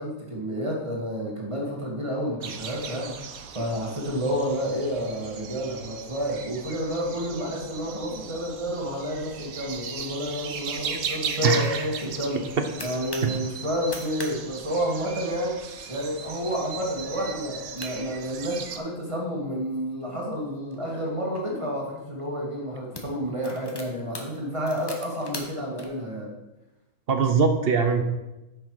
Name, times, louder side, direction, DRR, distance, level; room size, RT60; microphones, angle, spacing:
voice 1, 0.0-12.4 12.8-15.6 15.9-26.3, equal, 20° right, -2 dB, 2.1 m, -30 dB
sound 1, 2.4-18.8, right 6 dB, 75° right, 1.3 m, -37 dB
voice 2, 11.4-11.9 13.2-13.3 27.1-28.0, right 5 dB, 50° right, 7 dB, 0.9 m, -22 dB
sound 2, 12.2-13.4 13.8-14.3 14.6-14.7 15.0-15.4 15.9-16.2 16.6-16.7 17.5-17.6 17.8-19.0 19.6-21.4 22.2-22.4 22.7-25.9, left 1 dB, 20° left, 1.1 m, -41 dB
10.0 x 6.6 x 4.8 m, 0.99 s
omnidirectional pair, 1.5 m